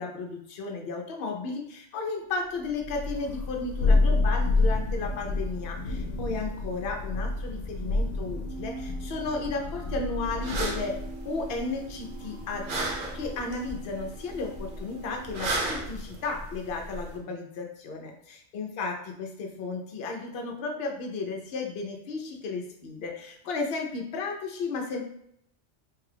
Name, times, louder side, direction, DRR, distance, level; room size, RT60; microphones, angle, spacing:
voice 1, 0.0-11.0 11.2-25.0, left 3 dB, 60° left, 2 dB, 0.8 m, -34 dB
Thunder, 2.8-11.2, left 3 dB, 90° left, 0.9 m, -28 dB
sound 1, 8.5-15.5, right 4 dB, 85° right, 1.2 m, -44 dB
sound 2, 10.4-17.2, right 2 dB, 55° right, 0.7 m, -35 dB
3.1 x 2.3 x 3.3 m, 0.71 s
omnidirectional pair, 1.2 m